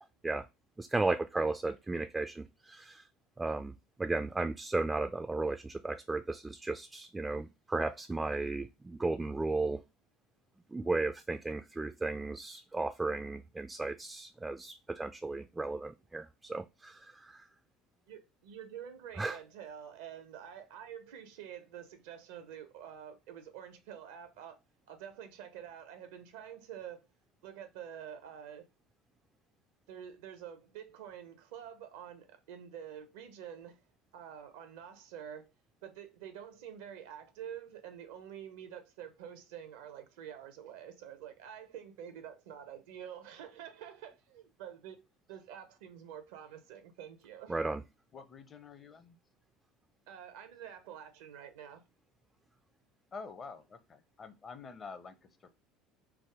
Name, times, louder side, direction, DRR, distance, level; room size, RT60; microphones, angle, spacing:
voice 1, 0.8-3.0 3.4-3.7 4.0-9.8 10.7-17.4 19.2-19.4 47.5-47.8, right 3 dB, 15° right, 0.3 m, -35 dB
voice 2, 18.1-24.6 24.9-27.1 27.4-28.7 29.9-33.8 34.1-35.5 35.8-45.0 45.3-47.6 50.1-51.8, right 9 dB, 75° right, 0.6 m, -47 dB
voice 3, 48.1-49.2 53.1-55.5, left 5 dB, 35° left, 0.6 m, -48 dB
3.4 x 2.0 x 3.6 m
hypercardioid pair, 70°, 0 cm